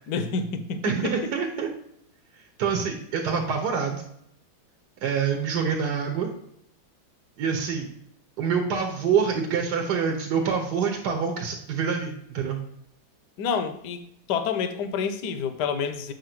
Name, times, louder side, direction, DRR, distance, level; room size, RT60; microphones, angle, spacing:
voice 1, 0.1-1.3 13.4-14.0 14.3-16.1, left 5 dB, 70° left, 9 dB, 1.2 m, -28 dB
voice 2, 0.8-1.7 2.6-4.0 5.0-6.3 7.4-7.9 8.4-12.6, right 6 dB, 65° right, 2 dB, 1.3 m, -26 dB
7.5 x 2.6 x 5.9 m, 0.73 s
omnidirectional pair, 2.1 m